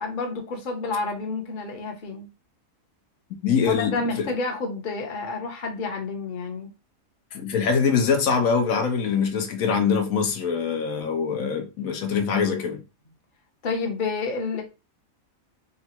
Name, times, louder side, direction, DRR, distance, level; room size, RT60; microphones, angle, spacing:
voice 1, 0.0-2.3 3.7-6.7 13.6-14.6, left 3 dB, 40° left, 0.9 m, -29 dB
voice 2, 3.4-3.9 7.3-12.8, left 6 dB, 80° left, 1.2 m, -23 dB
3.8 x 2.2 x 4.3 m
omnidirectional pair, 1.5 m